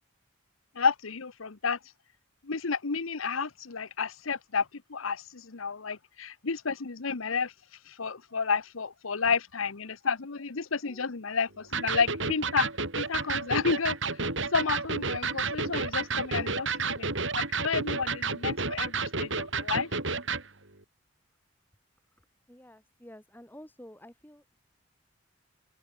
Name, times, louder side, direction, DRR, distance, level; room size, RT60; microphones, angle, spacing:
voice 1, 0.8-1.8 2.4-7.5 7.9-12.7 12.9-14.0 14.5-19.9, left 5 dB, 85° left, 1.0 m, -31 dB
voice 2, 10.5-11.1 22.5-24.6, equal, 10° left, 4.4 m, -51 dB
Electric guitar, 11.7-20.5, right 4 dB, 65° right, 5.6 m, -31 dB
open air
head